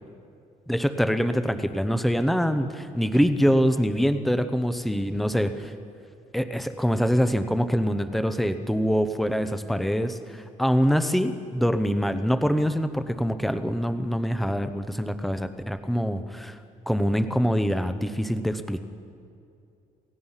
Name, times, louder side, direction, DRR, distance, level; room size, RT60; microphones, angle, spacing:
voice 1, 0.7-5.7 6.3-16.5 16.9-18.8, equal, ahead, 9 dB, 0.7 m, -24 dB
28.0 x 17.0 x 5.7 m, 2.5 s
cardioid pair, 170°, 14 cm